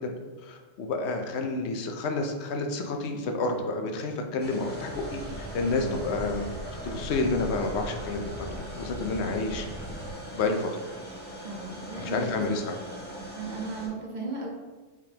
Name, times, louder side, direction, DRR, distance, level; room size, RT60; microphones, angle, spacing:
voice 1, 0.4-6.4 6.8-9.7 10.3-10.7 12.0-12.8, left 3 dB, 70° left, 4 dB, 0.9 m, -30 dB
sound 1, 4.4-13.9, equal, 10° left, 0.9 m, -41 dB
sound 2, 4.9-10.1, right 1 dB, 85° right, 1.1 m, -40 dB
voice 2, 11.4-12.4 13.3-14.5, right 3 dB, 50° right, -2 dB, 0.7 m, -36 dB
4.9 x 3.6 x 2.8 m, 1.3 s
omnidirectional pair, 1.2 m